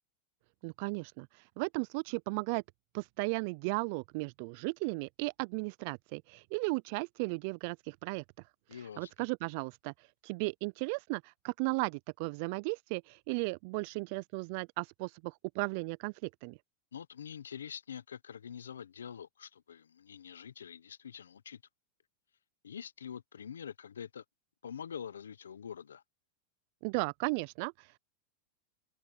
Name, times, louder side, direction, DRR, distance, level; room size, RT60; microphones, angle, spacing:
voice 1, 0.6-1.3 1.6-2.6 2.9-8.2 9.0-9.9 10.2-16.6 26.8-28.0, right 29 dB, 60° right, 0.4 m, -35 dB
voice 2, 8.7-9.1 16.9-21.6 22.6-24.2 24.6-26.0, left 8 dB, 90° left, 0.9 m, -45 dB
hypercardioid pair, 100°, 0 cm